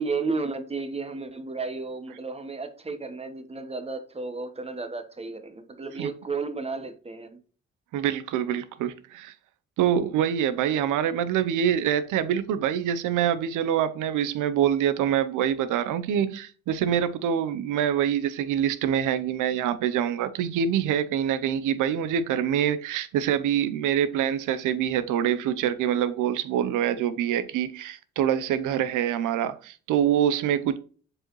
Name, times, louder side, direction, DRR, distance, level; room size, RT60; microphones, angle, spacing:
voice 1, 0.0-7.4, right 4 dB, 20° right, 1.1 m, -33 dB
voice 2, 7.9-9.3 9.8-30.8, right 9 dB, 90° right, 0.7 m, -25 dB
7.4 x 4.9 x 3.1 m
cardioid pair, 90°, 30 cm